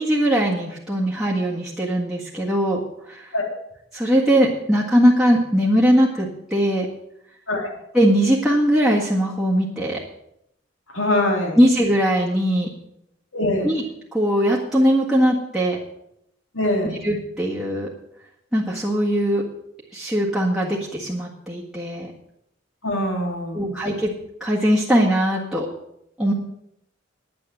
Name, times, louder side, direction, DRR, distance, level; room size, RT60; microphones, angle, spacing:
voice 1, 0.0-2.8 3.1-3.3 3.9-6.9 7.9-10.0 11.6-12.7 13.6-13.8 14.1-15.8 17.0-17.9 18.5-19.4 19.9-22.1 23.5-24.1 24.4-25.7 26.2-26.3, equal, 5° right, -7 dB, 1.7 m, -20 dB
voice 2, 10.9-11.6 13.3-13.8 16.5-17.0 22.8-23.7, left 1 dB, 90° left, 1 dB, 3.2 m, -23 dB
9.7 x 9.5 x 7.5 m, 0.79 s
head